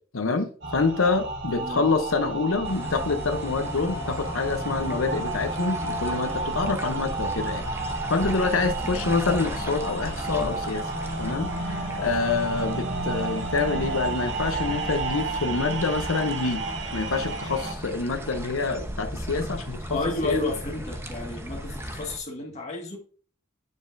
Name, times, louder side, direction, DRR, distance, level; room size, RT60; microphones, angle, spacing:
voice 1, 0.1-10.9 11.2-16.6 16.9-20.4, left 4 dB, 90° left, 7 dB, 0.8 m, -27 dB
sound 1, 0.6-17.7, right 3 dB, 60° right, 1.6 m, -32 dB
voice 2, 1.5-1.8 8.9-9.0 19.9-23.0, left 2 dB, 35° left, 0 dB, 1.8 m, -31 dB
sound 2, 2.6-22.2, equal, 15° right, 0.9 m, -36 dB
9.4 x 5.1 x 2.6 m, 0.42 s
head